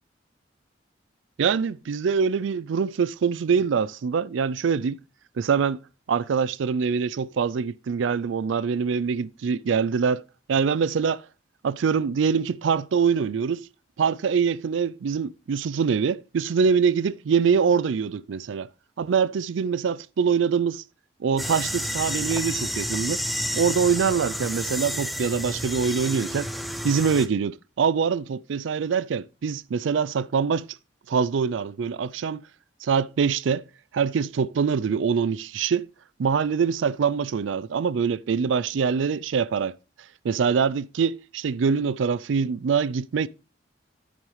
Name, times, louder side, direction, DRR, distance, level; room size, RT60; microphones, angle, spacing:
voice 1, 1.4-5.0 5.4-5.8 6.1-11.2 11.6-13.7 14.0-18.7 19.0-20.8 21.2-23.2 23.6-26.5 26.8-30.7 31.1-32.4 32.8-33.6 33.9-35.9 36.2-39.8 40.2-43.3, right 6 dB, 80° right, 0.4 m, -24 dB
sound 1, 21.4-27.3, equal, ahead, 0.5 m, -30 dB
9.2 x 9.2 x 3.2 m
head